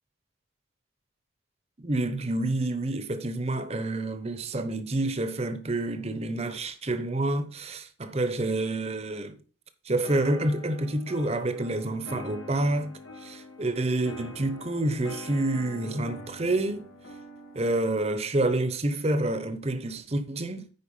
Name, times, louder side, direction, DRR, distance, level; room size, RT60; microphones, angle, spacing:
voice 1, 1.8-9.4 9.8-16.8 17.5-20.7, right 2 dB, 30° right, 0.9 m, -28 dB
sound 1, 10.0-17.8, left 2 dB, 80° left, 2.0 m, -44 dB
9.7 x 4.7 x 5.5 m
head